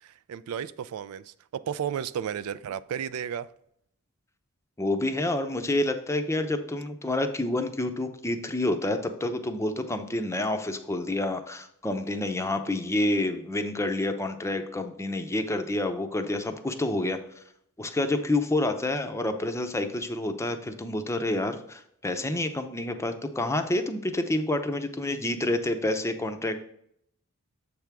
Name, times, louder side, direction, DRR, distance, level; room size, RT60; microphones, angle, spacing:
voice 1, 0.0-3.5, right 8 dB, 75° right, 0.3 m, -33 dB
voice 2, 4.8-17.2 17.8-26.6, left 1 dB, 15° left, 0.6 m, -28 dB
7.5 x 3.5 x 5.9 m
head